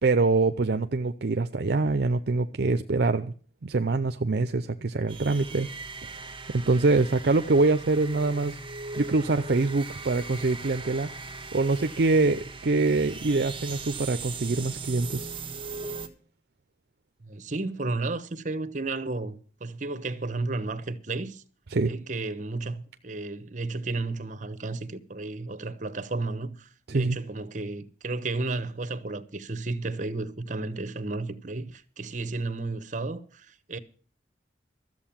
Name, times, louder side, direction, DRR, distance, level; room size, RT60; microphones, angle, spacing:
voice 1, 0.0-3.3 3.6-5.7 6.5-8.6 9.0-11.1 11.5-15.3 21.7-21.9 26.9-27.2, right 3 dB, 60° right, 0.6 m, -24 dB
sound 1, 5.1-16.1, right 4 dB, 30° right, 1.4 m, -39 dB
voice 2, 17.2-21.4 21.9-33.8, right 3 dB, 45° right, 1.0 m, -33 dB
13.5 x 7.8 x 7.3 m
head